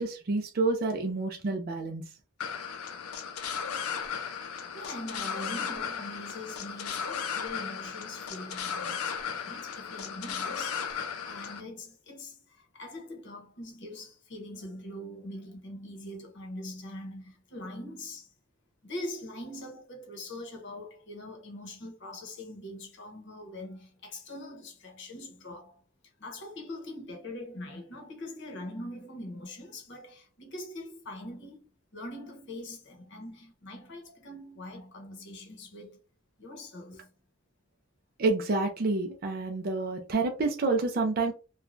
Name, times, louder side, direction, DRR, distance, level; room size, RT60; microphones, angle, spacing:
voice 1, 0.0-2.0 38.2-41.3, right 3 dB, 45° right, 0.4 m, -28 dB
sound 1, 2.4-11.6, left 7 dB, 80° left, 0.5 m, -35 dB
voice 2, 4.7-18.3 18.8-25.8 26.2-36.0 36.4-37.1, left 1 dB, 55° left, 0.9 m, -43 dB
3.1 x 2.2 x 2.4 m
head